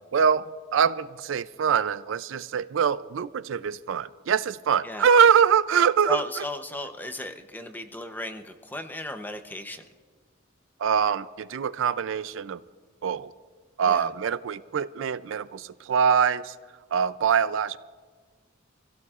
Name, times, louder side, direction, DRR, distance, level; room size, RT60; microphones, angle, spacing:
voice 1, 0.1-6.2 10.8-12.6 13.0-13.3 13.8-16.5 16.9-17.8, right 7 dB, 65° right, 15 dB, 0.4 m, -23 dB
voice 2, 6.1-9.8 13.8-14.1, left 1 dB, 10° left, 7 dB, 0.7 m, -35 dB
27.0 x 16.0 x 2.4 m, 1.5 s
head